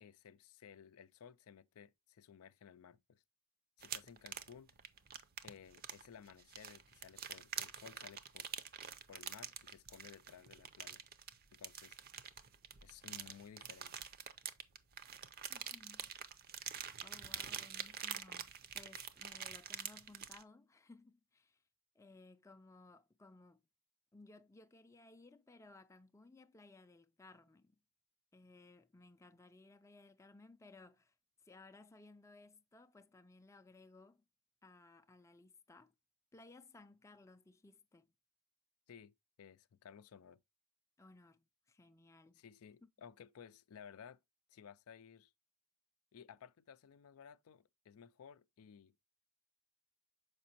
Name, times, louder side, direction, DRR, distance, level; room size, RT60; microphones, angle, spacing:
voice 1, 0.0-3.2 3.8-4.7 5.4-8.5 9.1-11.0 11.5-12.0 12.8-13.9 38.9-40.4 42.4-44.2 44.5-45.3 46.1-48.9, left 7 dB, 90° left, 0.4 m, -57 dB
sound 1, 3.8-20.4, right 8 dB, 45° right, 0.5 m, -46 dB
voice 2, 15.5-16.1 17.0-18.5 18.7-21.6 22.0-23.6 24.1-27.8 28.3-31.1 31.4-34.2 34.6-35.9 36.3-38.1 41.0-42.4, left 2 dB, 15° left, 0.4 m, -60 dB
6.5 x 5.1 x 2.8 m
head